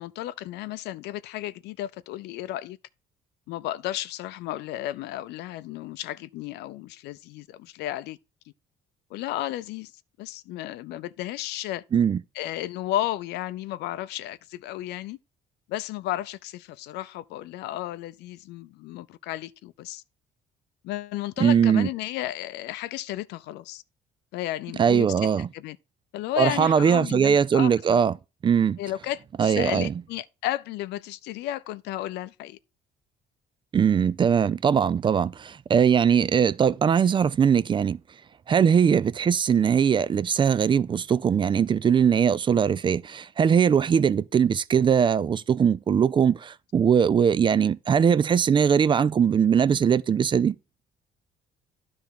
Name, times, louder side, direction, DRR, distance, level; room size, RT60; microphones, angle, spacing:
voice 1, 0.0-2.8 3.5-8.2 9.1-9.9 10.2-11.8 12.3-15.2 15.7-20.0 20.8-23.8 24.3-25.8 26.1-27.7 28.8-32.6, left 14 dB, 85° left, 0.5 m, -33 dB
voice 2, 21.4-21.9 24.8-25.5 26.4-28.1 28.4-28.8 29.4-29.9 33.7-38.0 38.5-50.5, right 7 dB, 30° right, 0.3 m, -21 dB
10.5 x 3.5 x 5.6 m
cardioid pair, 110°, 17 cm